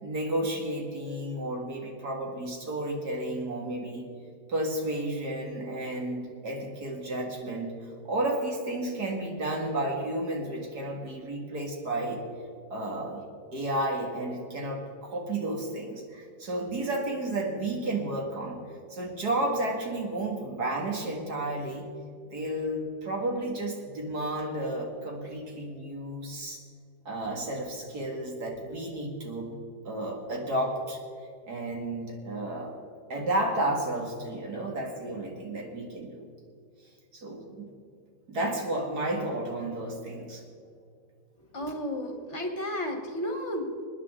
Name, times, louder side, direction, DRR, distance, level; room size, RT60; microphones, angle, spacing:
voice 1, 0.0-4.1 4.5-7.7 8.0-12.2 12.7-13.2 13.5-18.6 18.9-21.9 22.3-26.6 27.1-29.5 29.8-31.0 31.5-32.7 33.1-36.3 37.1-37.7 38.3-40.4, right 1 dB, 70° right, 0 dB, 2.6 m, -32 dB
voice 2, 41.4-43.9, left 1 dB, 45° left, 4 dB, 1.6 m, -33 dB
27.0 x 9.9 x 3.8 m, 2.3 s
omnidirectional pair, 1.7 m